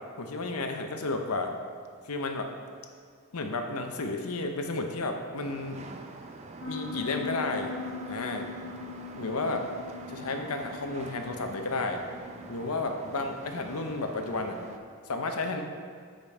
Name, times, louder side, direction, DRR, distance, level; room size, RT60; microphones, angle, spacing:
voice 1, 0.2-1.5 2.0-2.5 3.3-5.8 6.7-7.7 8.1-8.5 9.1-9.7 10.1-12.0 12.5-14.6 15.1-15.6, left 3 dB, 80° left, 5 dB, 0.8 m, -32 dB
sound 1, 5.4-14.8, right 3 dB, 30° right, 0.5 m, -46 dB
Piano, 6.6-12.8, left 4 dB, 60° left, 1.2 m, -41 dB
7.6 x 5.2 x 4.6 m, 2.1 s
head